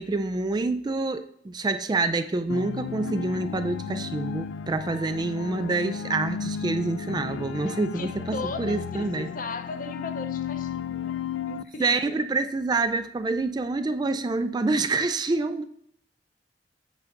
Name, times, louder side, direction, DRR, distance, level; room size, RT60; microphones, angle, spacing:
voice 1, 0.0-9.3 11.8-15.6, right 3 dB, 25° right, 0.3 m, -27 dB
sound 1, 2.5-11.6, left 7 dB, 75° left, 0.3 m, -34 dB
voice 2, 8.0-12.2, left 3 dB, 50° left, 0.7 m, -37 dB
8.2 x 3.7 x 6.5 m
head